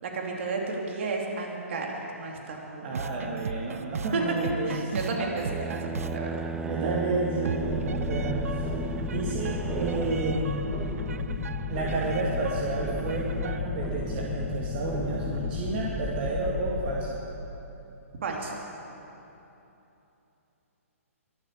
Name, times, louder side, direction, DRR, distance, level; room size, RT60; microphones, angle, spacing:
voice 1, 0.0-3.0 4.1-6.5 18.2-18.6, right 3 dB, 55° right, 0 dB, 2.8 m, -32 dB
voice 2, 2.8-5.1 6.6-8.7 9.1-10.5 11.7-17.2, right 3 dB, 40° right, -3 dB, 2.0 m, -31 dB
sound 1, 2.9-13.6, right 5 dB, 75° right, 0.6 m, -38 dB
sound 2, 5.1-10.4, right 4 dB, 10° right, 0.6 m, -35 dB
sound 3, 7.6-17.0, left 3 dB, 10° left, 1.7 m, -33 dB
23.0 x 8.2 x 6.8 m, 3.0 s
hypercardioid pair, 130°, 8 cm